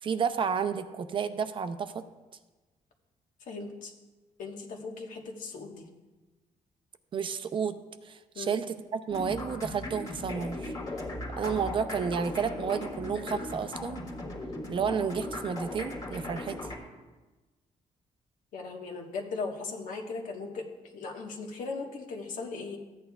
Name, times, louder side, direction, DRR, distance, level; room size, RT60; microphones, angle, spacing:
voice 1, 0.0-2.0 7.1-7.8 8.0-10.7 11.4-14.0 14.7-16.6, right 6 dB, 40° right, 10 dB, 0.5 m, -31 dB
voice 2, 3.4-3.9 4.4-5.9 8.3-8.5 18.5-22.8, left 4 dB, 75° left, 2 dB, 1.3 m, -38 dB
sound 1, 9.1-16.8, left 2 dB, 25° left, 1.5 m, -38 dB
14.5 x 8.8 x 2.3 m, 1.2 s
cardioid pair, 145°, 14 cm